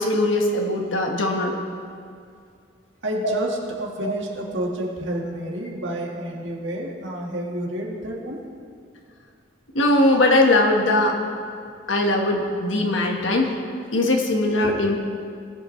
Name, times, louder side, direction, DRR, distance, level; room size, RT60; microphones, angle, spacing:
voice 1, 0.0-1.5 3.2-3.3 4.0-4.1 9.7-11.1 11.9-13.6 13.9-15.0, left 2 dB, 90° left, 1 dB, 1.4 m, -20 dB
voice 2, 3.0-8.4, right 1 dB, 80° right, -1 dB, 1.7 m, -29 dB
19.0 x 8.0 x 3.2 m, 2.3 s
head